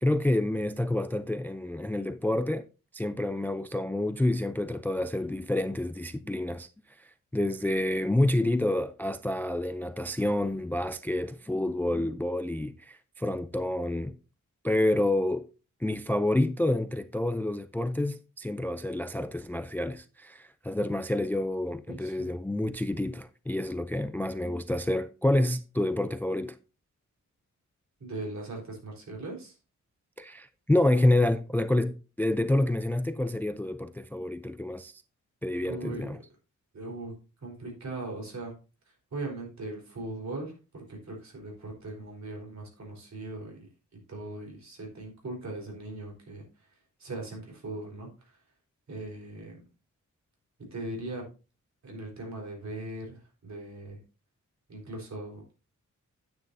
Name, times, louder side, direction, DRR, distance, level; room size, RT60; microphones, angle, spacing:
voice 1, 0.0-2.7 2.9-6.7 7.0-14.1 14.6-15.5 15.8-26.6 30.2-35.0 35.4-36.2, left 1 dB, 5° left, 0.3 m, -28 dB
voice 2, 21.9-22.3 28.0-29.5 35.6-36.1 36.7-37.1 37.4-38.5 39.1-46.7 47.0-48.4 48.9-49.6 50.7-51.2 51.8-54.0 54.7-55.4, right 2 dB, 60° right, 4.0 m, -39 dB
9.8 x 9.3 x 2.6 m
wide cardioid pair, 160°, 31 cm